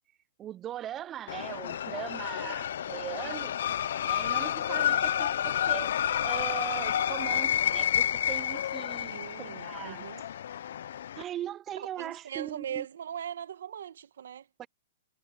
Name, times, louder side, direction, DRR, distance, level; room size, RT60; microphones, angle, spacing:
voice 1, 0.4-3.5 4.0-10.1 11.2-12.9 14.6-14.7, right 11 dB, 25° right, 0.4 m, -40 dB
sound 1, 1.3-11.2, left 10 dB, 75° left, 0.5 m, -30 dB
voice 2, 9.1-10.2 11.8-14.5, right 9 dB, 80° right, 1.4 m, -40 dB
hypercardioid pair, 140°, 0 cm